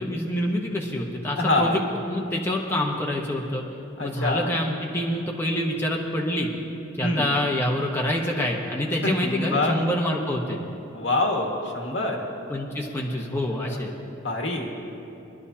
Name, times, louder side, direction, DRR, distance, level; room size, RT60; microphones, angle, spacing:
voice 1, 0.0-1.8 2.1-3.6 4.0-6.5 7.0-10.6 12.5-13.9, left 1 dB, 10° left, -2 dB, 1.0 m, -26 dB
voice 2, 1.4-1.8 4.0-4.5 7.0-7.3 9.0-9.8 10.9-12.2 14.2-14.7, left 2 dB, 70° left, 1 dB, 1.8 m, -25 dB
24.0 x 11.5 x 2.8 m, 2.9 s
head